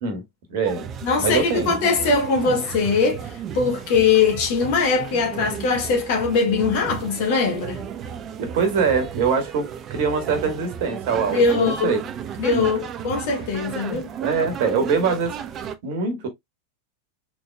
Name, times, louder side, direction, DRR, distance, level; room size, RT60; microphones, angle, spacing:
voice 1, 0.5-0.9 1.2-1.8 8.4-12.0 12.5-12.7 14.2-15.4 15.8-16.3, right 5 dB, 50° right, 1.5 m, -23 dB
sound 1, 0.6-15.8, right 8 dB, 30° right, 0.5 m, -34 dB
voice 2, 1.0-3.3 3.5-7.8 11.3-12.0 12.4-14.1, left 4 dB, 50° left, 1.7 m, -21 dB
4.4 x 3.9 x 2.2 m
figure-of-eight pair, 90°, 0 cm